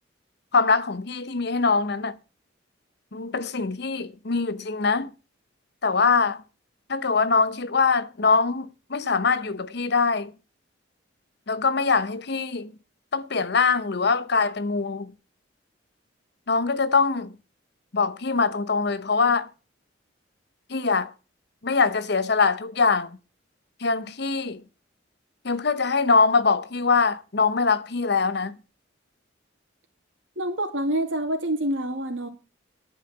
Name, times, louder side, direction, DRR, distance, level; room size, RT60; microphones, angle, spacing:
voice 1, 0.5-2.2 3.1-5.1 5.8-6.4 6.9-10.3 11.5-12.7 13.1-15.1 16.5-17.3 17.9-19.5 20.7-21.1 21.6-23.2 23.8-24.6 25.4-28.6, left 4 dB, 60° left, 0.9 m, -23 dB
voice 2, 30.4-32.3, right 1 dB, 90° right, 2.5 m, -27 dB
10.5 x 5.5 x 8.1 m
head